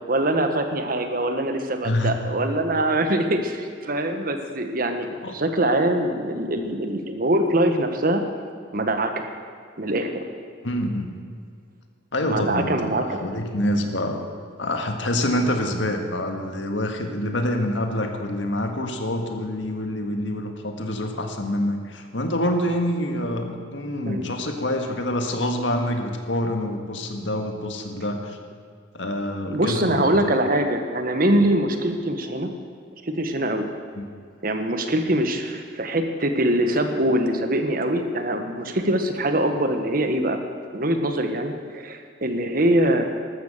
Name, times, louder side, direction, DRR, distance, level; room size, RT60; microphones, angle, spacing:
voice 1, 0.1-8.2 8.7-9.2 9.8-10.3 12.3-13.2 24.0-24.2 29.5-32.5 33.0-33.7 34.4-40.4 40.7-43.1, right 1 dB, 50° right, 6 dB, 1.4 m, -23 dB
voice 2, 1.8-2.2 5.2-5.4 10.6-11.1 12.1-14.2 14.6-28.4 28.9-30.1 33.9-34.1, left 1 dB, 80° left, 4 dB, 1.7 m, -26 dB
13.5 x 13.0 x 6.7 m, 2.1 s
head